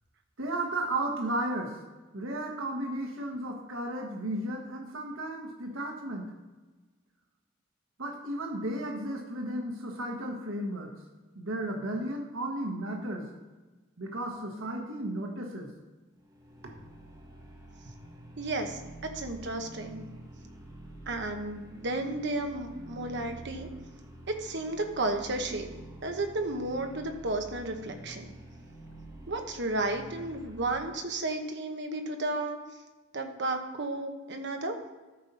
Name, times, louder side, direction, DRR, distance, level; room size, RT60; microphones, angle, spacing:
voice 1, 0.4-1.8 2.1-6.3 8.0-10.9 11.3-13.3 14.0-15.7, right 1 dB, 85° right, 1 dB, 1.4 m, -34 dB
sound 1, 16.2-31.0, right 1 dB, 20° right, 1.3 m, -48 dB
voice 2, 18.4-20.0 21.1-23.7 24.3-25.7 26.0-28.3 29.3-32.6 33.1-34.8, right 2 dB, 60° right, 5 dB, 1.1 m, -33 dB
13.5 x 5.4 x 4.3 m, 1.2 s
head